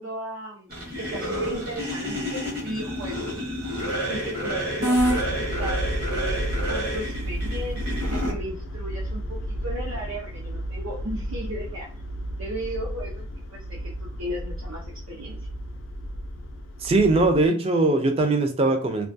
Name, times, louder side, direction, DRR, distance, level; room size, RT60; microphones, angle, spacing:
voice 1, 0.0-3.3 4.1-12.0 12.4-13.2 13.5-15.5, right 1 dB, 80° right, 0.6 m, -36 dB
sound 1, 0.7-8.3, equal, 45° right, 0.9 m, -28 dB
sound 2, 4.9-17.5, equal, 75° left, 0.4 m, -32 dB
voice 2, 16.8-19.1, right 2 dB, 30° right, 0.3 m, -21 dB
2.3 x 2.2 x 2.5 m
head